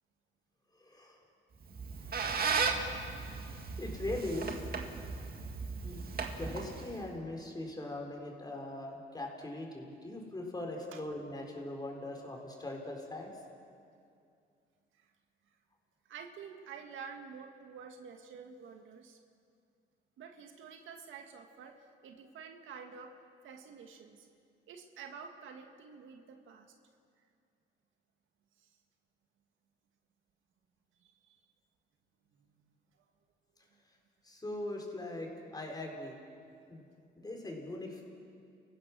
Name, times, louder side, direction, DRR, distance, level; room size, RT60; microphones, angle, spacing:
voice 1, 0.8-1.2 3.8-4.7 5.8-6.1 6.3-13.3 34.2-36.2 36.7-36.8 37.2-38.0, left 1 dB, 20° left, 1 dB, 4.5 m, -40 dB
Squeak, 1.6-7.1, right 5 dB, 50° right, 2.1 m, -36 dB
voice 2, 16.1-19.2 20.2-21.7 22.0-23.1 23.4-24.3 24.7-26.7 28.6-28.7 31.0-31.4 32.4-32.7 37.1-37.2, right 6 dB, 80° right, 4 dB, 1.9 m, -49 dB
29.5 x 15.5 x 6.3 m, 2.4 s
cardioid pair, 90°, 20 cm